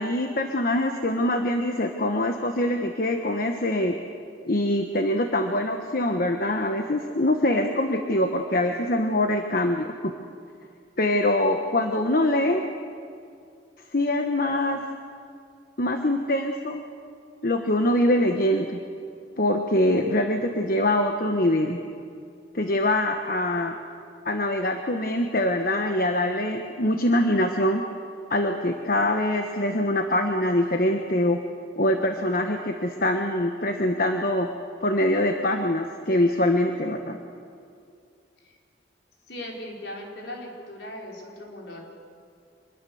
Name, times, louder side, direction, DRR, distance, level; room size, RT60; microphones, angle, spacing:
voice 1, 0.0-4.0 4.4-10.1 11.0-12.6 13.9-14.8 15.8-16.8 17.4-18.8 19.4-21.8 22.5-23.8 24.2-27.8 28.3-31.4 31.8-34.5 34.8-37.2, left 1 dB, 50° left, 4 dB, 1.2 m, -24 dB
voice 2, 39.3-41.8, left 1 dB, 70° left, -1 dB, 4.8 m, -38 dB
25.5 x 21.0 x 7.1 m, 2.4 s
head